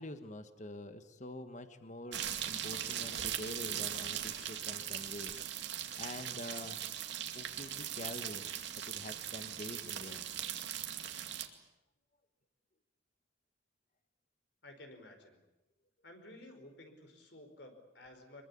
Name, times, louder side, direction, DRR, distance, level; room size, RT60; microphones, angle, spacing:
voice 1, 0.0-5.3 6.0-6.8 7.3-8.5 8.7-10.3, left 1 dB, 40° left, 9 dB, 1.4 m, -46 dB
sound 1, 2.1-11.5, right 10 dB, 65° right, 2.3 m, -40 dB
voice 2, 14.6-15.4 16.0-18.4, left 1 dB, 60° left, 6 dB, 4.9 m, -53 dB
24.5 x 22.5 x 8.6 m, 0.97 s
head